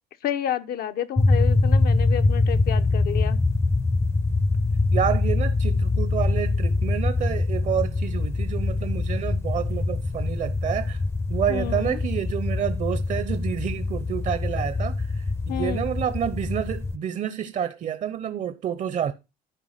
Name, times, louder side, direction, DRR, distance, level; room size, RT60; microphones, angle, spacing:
voice 1, 0.2-3.4 11.5-12.0 15.5-15.9, left 10 dB, 65° left, 0.8 m, -30 dB
sound 1, 1.2-17.0, left 3 dB, 15° left, 0.5 m, -24 dB
voice 2, 4.9-11.0 11.3-15.1 15.5-19.1, right 9 dB, 45° right, 0.7 m, -29 dB
10.0 x 4.7 x 5.7 m
cardioid pair, 110°, 17 cm